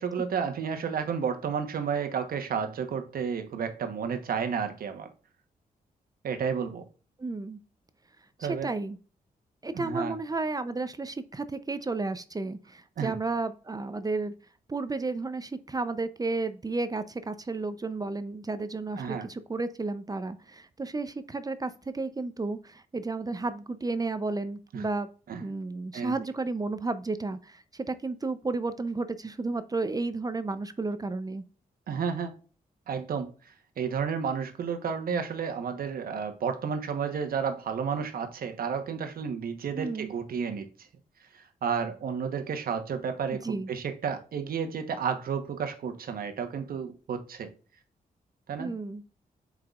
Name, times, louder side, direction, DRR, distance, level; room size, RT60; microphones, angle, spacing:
voice 1, 0.0-5.1 6.2-6.8 8.4-8.7 9.7-10.2 13.0-13.1 19.0-19.3 24.7-24.8 25.3-25.4 25.9-26.1 31.9-32.3 32.9-40.9 41.3-47.5 48.5-48.8, right 6 dB, 75° right, 1.2 m, -32 dB
voice 2, 7.2-7.6 8.4-9.0 9.6-14.3 14.7-25.1 25.4-31.4 39.7-40.1 43.4-43.7 48.6-49.0, right 3 dB, 25° right, 0.6 m, -32 dB
7.9 x 4.9 x 2.4 m
cardioid pair, 75°, 15 cm